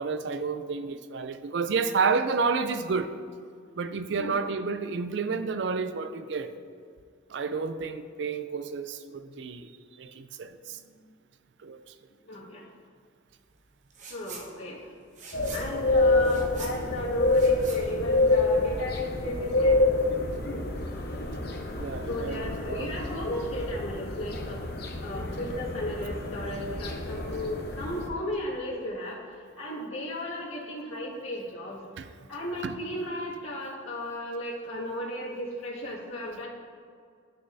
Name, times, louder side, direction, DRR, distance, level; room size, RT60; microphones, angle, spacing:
voice 1, 0.0-3.1 3.8-6.5 7.3-10.8 11.6-11.8 21.7-22.9 32.0-32.1 32.6-32.7, right 4 dB, 60° right, 10 dB, 0.4 m, -30 dB
voice 2, 4.2-4.5 10.7-11.1 12.2-12.7 14.1-15.0 15.5-19.9 20.5-20.7 22.1-24.6 25.0-31.8 32.3-36.5, left 1 dB, 85° left, -5 dB, 1.9 m, -34 dB
sound 1, 13.9-14.5 14.8-18.7, right 5 dB, 40° right, 1.0 m, -45 dB
sound 2, 15.3-28.1, left 2 dB, 50° left, 0.8 m, -27 dB
11.0 x 6.5 x 2.7 m, 2.1 s
head